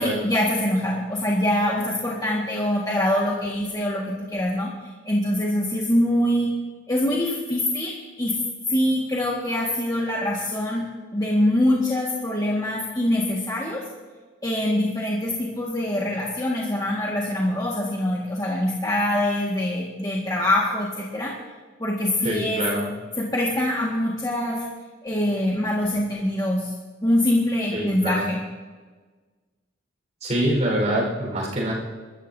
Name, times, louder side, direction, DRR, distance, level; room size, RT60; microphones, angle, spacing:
voice 1, 0.0-4.7 5.0-6.6 6.9-8.4 8.7-13.8 14.4-21.3 21.8-22.6 23.2-24.6 25.0-26.7 27.0-28.4, left 1 dB, 20° left, -4 dB, 1.6 m, -24 dB
voice 2, 22.2-22.9 27.7-28.2 30.2-31.7, right 1 dB, 40° right, -2 dB, 4.3 m, -25 dB
28.5 x 13.5 x 2.7 m, 1.4 s
head